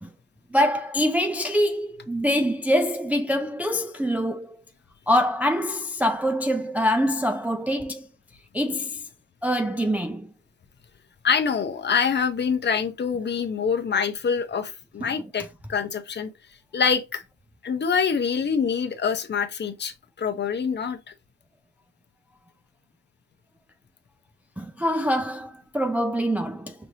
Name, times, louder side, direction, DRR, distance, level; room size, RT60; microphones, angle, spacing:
voice 1, 0.5-4.6 5.1-8.1 8.5-9.0 9.4-10.3 15.0-15.1 24.6-26.7, equal, 5° right, 0.4 m, -24 dB
voice 2, 11.2-16.3 16.7-17.2 17.6-21.0, left 6 dB, 35° left, 0.8 m, -25 dB
5.3 x 2.9 x 2.8 m
cardioid pair, 90°, 30 cm